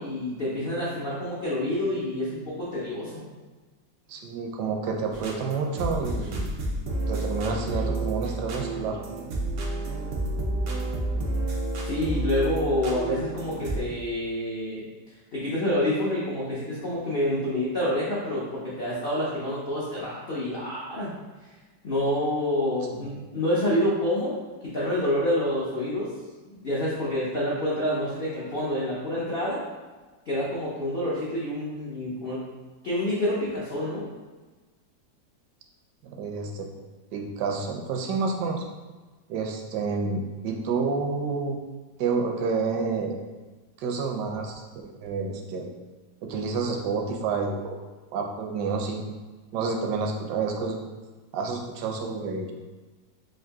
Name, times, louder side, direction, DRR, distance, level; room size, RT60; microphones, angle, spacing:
voice 1, 0.0-3.3 11.8-14.8 15.3-21.1 21.8-26.1 26.5-29.6 30.3-32.4 32.8-34.1, left 1 dB, 75° left, -7 dB, 0.5 m, -28 dB
voice 2, 4.1-6.5 7.1-9.0 22.9-23.0 36.0-36.7 37.1-38.6 39.3-41.6 42.0-43.2 43.8-45.7 46.2-47.8 48.1-49.2 49.5-50.8 51.3-52.5, right 4 dB, 75° right, 2 dB, 1.1 m, -29 dB
sound 1, 5.1-13.8, right 2 dB, 90° right, 0.6 m, -30 dB
3.7 x 2.6 x 3.4 m, 1.3 s
omnidirectional pair, 2.0 m